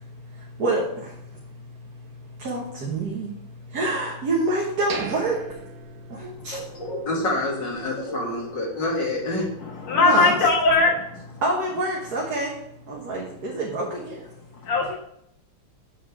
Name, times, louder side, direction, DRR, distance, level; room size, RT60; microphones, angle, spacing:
voice 1, 2.4-3.3 3.7-5.4 6.4-6.6 10.0-10.3 11.4-12.5 12.9-14.2, right 2 dB, 50° right, -3 dB, 1.7 m, -26 dB
sound 1, 4.9-6.8 7.1-7.2 7.8-7.9, right 5 dB, 75° right, 1.7 m, -37 dB
voice 2, 6.2-9.5, left 1 dB, 55° left, -2 dB, 2.7 m, -28 dB
voice 3, 9.6-11.4 14.6-15.0, left 3 dB, 85° left, 0 dB, 2.3 m, -20 dB
7.8 x 4.6 x 5.7 m, 0.72 s
omnidirectional pair, 2.3 m